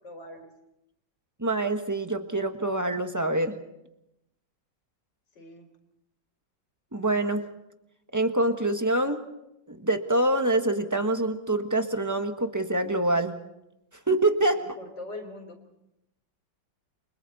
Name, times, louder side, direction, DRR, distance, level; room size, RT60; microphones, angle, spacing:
voice 1, 0.0-0.5 5.4-5.7 14.5-15.6, left 2 dB, 90° left, 0 dB, 4.0 m, -42 dB
voice 2, 1.4-3.5 6.9-7.4 8.1-9.2 9.7-13.3 14.1-14.6, right 2 dB, 10° right, 6 dB, 1.3 m, -25 dB
29.5 x 23.5 x 4.3 m, 0.86 s
omnidirectional pair, 1.9 m